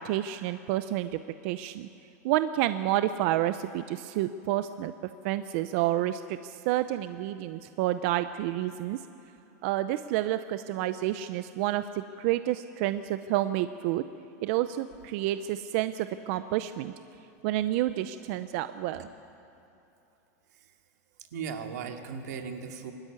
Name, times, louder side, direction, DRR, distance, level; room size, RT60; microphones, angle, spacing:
voice 1, 0.0-1.9 2.2-4.9 5.2-9.0 9.6-14.0 14.4-16.9 17.4-19.0, right 14 dB, 50° right, 11 dB, 0.6 m, -29 dB
voice 2, 21.3-22.9, right 6 dB, 90° right, 4 dB, 2.4 m, -37 dB
24.5 x 13.0 x 9.6 m, 3.0 s
supercardioid pair, 160°, 9 cm